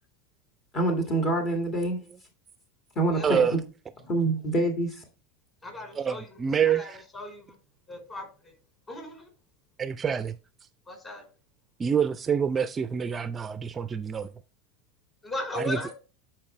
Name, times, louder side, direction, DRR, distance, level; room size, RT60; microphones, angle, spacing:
voice 1, 0.7-2.0 3.0-3.5 4.1-5.0, right 2 dB, 35° left, 1.9 m, -26 dB
voice 2, 3.2-3.5 6.0-7.0 9.8-10.4 11.8-14.3 15.6-15.8, right 7 dB, 25° right, 0.4 m, -26 dB
voice 3, 5.6-6.4 6.7-7.6 7.9-8.6 8.9-9.3 10.9-11.3 13.0-13.1 15.2-16.0, left 1 dB, 20° left, 4.2 m, -37 dB
11.0 x 4.6 x 3.2 m
supercardioid pair, 110°, 0 cm